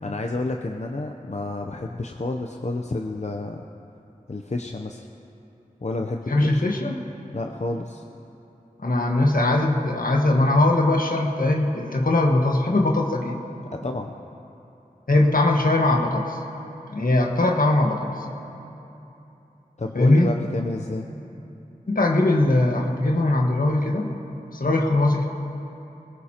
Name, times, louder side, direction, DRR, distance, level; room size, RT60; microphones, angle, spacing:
voice 1, 0.0-3.7 4.3-5.1 5.8-6.6 7.3-8.0 13.7-14.1 19.8-21.1, left 2 dB, 50° left, 3 dB, 0.7 m, -30 dB
voice 2, 6.3-7.0 8.8-13.4 15.1-16.4 16.9-18.2 19.9-20.3 21.9-24.1 24.5-25.3, left 2 dB, 70° left, 1 dB, 1.5 m, -20 dB
21.5 x 18.0 x 2.9 m, 2.9 s
wide cardioid pair, 40°, 15 cm